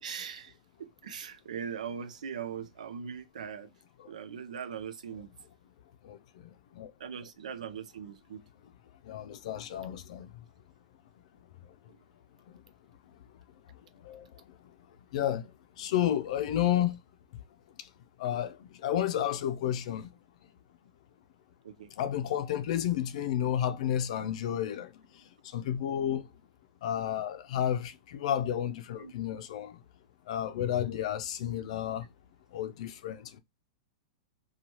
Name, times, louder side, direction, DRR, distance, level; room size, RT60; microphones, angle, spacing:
voice 1, 0.0-0.5 0.8-3.7 4.0-5.3 7.0-8.4 15.2-15.3 21.6-21.9 29.0-29.1, right 7 dB, 80° right, 0.5 m, -40 dB
voice 2, 6.0-6.9 9.0-10.4 11.6-11.7 12.5-12.6 13.9-14.7 15.1-17.0 17.8-17.9 18.2-20.2 22.0-26.3 26.8-29.8 30.3-32.1 32.5-33.4, left 10 dB, 65° left, 0.5 m, -32 dB
3.1 x 2.3 x 2.8 m
hypercardioid pair, 115°, 4 cm